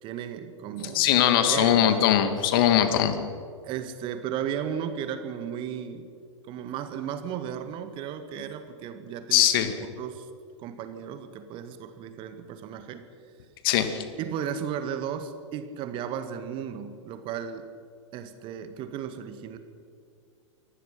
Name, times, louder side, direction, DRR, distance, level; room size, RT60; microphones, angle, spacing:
voice 1, 0.0-1.9 3.6-6.1 6.5-9.5 9.8-10.3 10.6-13.1 14.2-17.7 18.1-19.6, right 8 dB, 30° right, 9 dB, 1.9 m, -35 dB
voice 2, 0.9-3.2 9.3-9.7 13.6-14.0, left 11 dB, 45° left, 8 dB, 2.6 m, -21 dB
28.5 x 24.5 x 5.9 m, 2.2 s
figure-of-eight pair, 100°, 16 cm